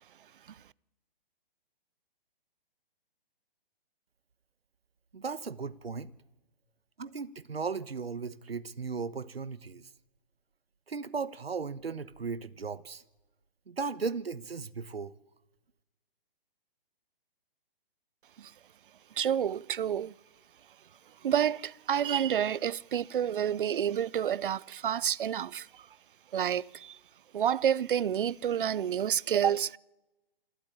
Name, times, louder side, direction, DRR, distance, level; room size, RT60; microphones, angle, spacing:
voice 1, 5.1-6.1 7.0-9.9 10.9-13.0 13.7-15.1, right 5 dB, 85° right, 1.2 m, -36 dB
voice 2, 19.2-20.1 21.2-25.7 26.3-27.0 27.3-29.8, right 9 dB, 60° right, 0.7 m, -29 dB
28.0 x 13.0 x 8.6 m
figure-of-eight pair, 135°, 29 cm